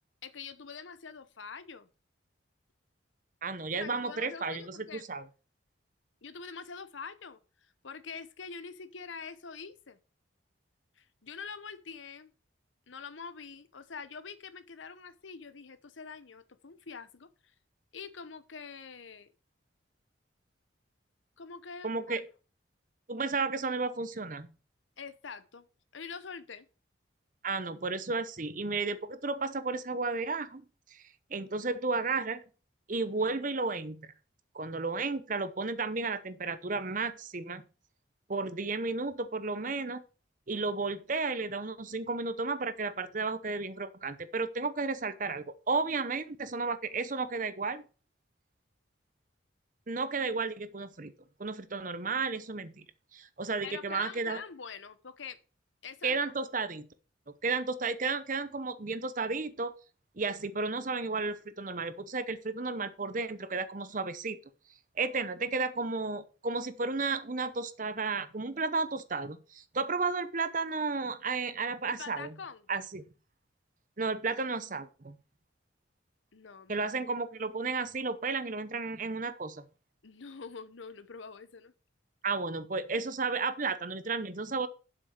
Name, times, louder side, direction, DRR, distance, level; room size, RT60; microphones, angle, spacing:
voice 1, 0.2-1.9 3.7-5.0 6.2-10.0 11.0-12.3 12.9-17.3 17.9-19.3 21.4-22.2 25.0-25.7 25.9-26.7 53.6-55.4 55.8-56.2 71.9-72.6 76.3-77.0 80.0-81.7, left 5 dB, 80° left, 0.9 m, -45 dB
voice 2, 3.4-5.2 21.8-22.2 23.1-24.5 27.4-30.6 30.9-31.0 31.3-32.4 32.9-34.0 34.5-37.6 38.3-40.0 40.5-47.8 49.9-51.1 51.4-52.8 53.1-54.4 56.0-56.9 57.4-59.7 60.2-64.4 65.0-72.3 72.7-73.0 74.0-75.2 76.7-79.6 82.2-84.7, right 4 dB, 40° right, 0.8 m, -33 dB
7.8 x 6.1 x 6.5 m
head